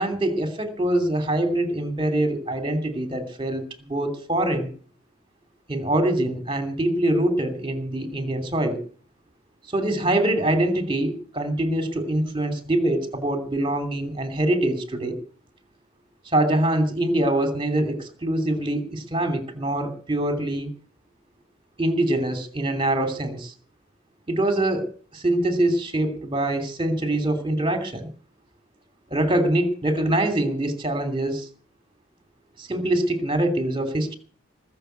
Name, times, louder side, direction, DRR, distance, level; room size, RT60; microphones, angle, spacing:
voice 1, 0.0-4.7 5.7-8.8 9.7-15.2 16.2-20.7 21.8-23.5 24.3-28.1 29.1-31.5 32.6-34.2, right 1 dB, 25° right, 7 dB, 2.9 m, -24 dB
20.0 x 7.2 x 8.1 m, 0.42 s
head